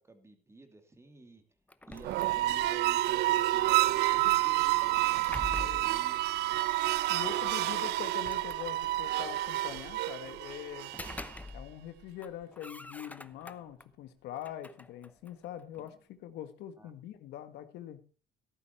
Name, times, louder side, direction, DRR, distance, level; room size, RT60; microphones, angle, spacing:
voice 1, 0.0-1.4 1.9-6.2 7.2-7.8 16.8-16.9, right 2 dB, 15° right, 7 dB, 2.6 m, -51 dB
sound 1, 1.7-2.8 4.8-6.1 7.3-7.4 8.0-9.1 10.7-11.9 12.2-13.9 14.3-16.0, left 2 dB, 10° left, 0.8 m, -45 dB
sound 2, 2.0-11.4, right 17 dB, 85° right, 0.6 m, -29 dB
voice 2, 5.6-5.9 7.1-11.0 11.5-18.0, left 11 dB, 80° left, 10 dB, 1.5 m, -43 dB
13.5 x 11.5 x 4.3 m, 0.37 s
cardioid pair, 110°, 17 cm